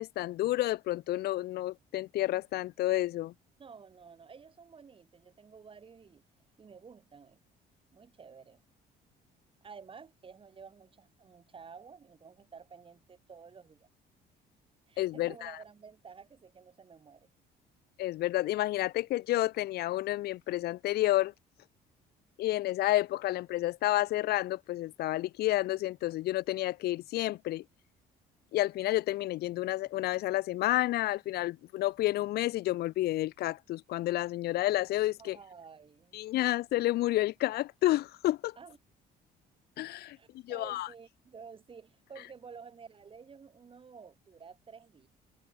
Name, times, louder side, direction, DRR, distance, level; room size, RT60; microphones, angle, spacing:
voice 1, 0.0-3.3 15.0-15.5 18.0-21.3 22.4-27.6 28.5-35.4 36.1-38.5 39.8-40.2 40.4-40.9, left 16 dB, 70° left, 0.7 m, -30 dB
voice 2, 3.6-6.2 6.6-7.4 7.9-8.6 9.6-13.9 14.9-17.3 35.2-36.2 38.6-38.8 40.1-45.1, right 6 dB, 30° right, 3.2 m, -52 dB
cardioid pair, 110°, 17 cm